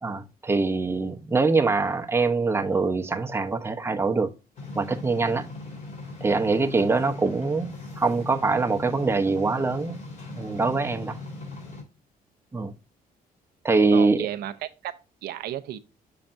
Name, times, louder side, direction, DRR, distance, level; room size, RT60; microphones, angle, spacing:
voice 1, 0.0-4.3 4.7-5.5 6.2-10.0 10.4-11.2 12.5-12.7 13.6-14.3, right 3 dB, 15° right, 0.8 m, -24 dB
sound 1, 4.6-11.8, left 2 dB, 50° left, 3.5 m, -39 dB
voice 2, 13.9-15.0 15.2-15.8, right 12 dB, 85° right, 0.6 m, -33 dB
7.2 x 5.7 x 2.5 m
cardioid pair, 115°, 16 cm